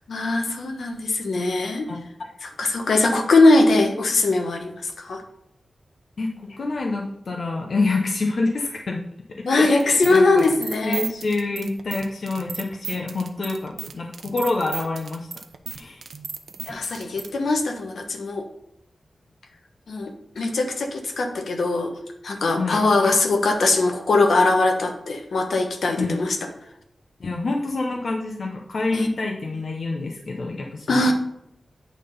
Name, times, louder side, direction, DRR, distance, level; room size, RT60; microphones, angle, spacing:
voice 1, 0.1-1.9 2.4-5.2 9.5-11.0 16.7-18.4 19.9-21.9 22.2-26.4 28.9-29.1 30.9-31.1, left 2 dB, 80° left, 4 dB, 1.1 m, -21 dB
voice 2, 6.6-9.0 9.4-10.5 10.8-15.3 15.7-16.0 22.6-22.9 26.0-26.2 27.2-31.1, left 3 dB, 60° left, 0 dB, 0.8 m, -27 dB
sound 1, 9.8-17.3, right 6 dB, 85° right, 0.6 m, -35 dB
8.6 x 3.8 x 5.3 m, 0.79 s
wide cardioid pair, 125°, 0 cm